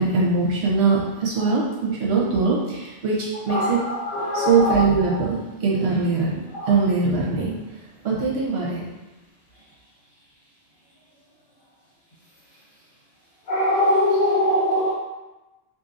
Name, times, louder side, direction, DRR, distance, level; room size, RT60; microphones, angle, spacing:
voice 1, 0.0-3.8 4.3-6.4 6.7-7.6 8.0-8.8, right 4 dB, 70° right, -5 dB, 1.1 m, -22 dB
voice 2, 3.5-4.8 6.5-6.7 13.5-14.9, left 1 dB, 50° left, -8 dB, 1.3 m, -22 dB
2.7 x 2.7 x 2.5 m, 1.1 s
omnidirectional pair, 1.1 m